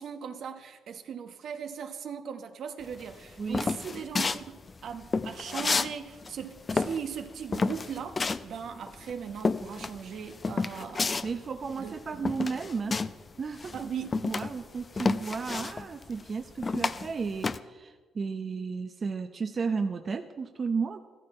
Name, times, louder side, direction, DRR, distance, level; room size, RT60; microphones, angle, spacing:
voice 1, 0.0-11.1 11.8-12.2 13.7-14.2, right 7 dB, 65° right, 1.2 m, -39 dB
sound 1, 2.9-5.9 6.2-13.3 13.5-17.6, left 4 dB, 35° left, 0.7 m, -30 dB
voice 2, 11.2-13.0 13.4-13.9 14.2-21.0, right 5 dB, 45° right, 0.8 m, -33 dB
14.5 x 14.0 x 4.4 m
supercardioid pair, 60°, 0 cm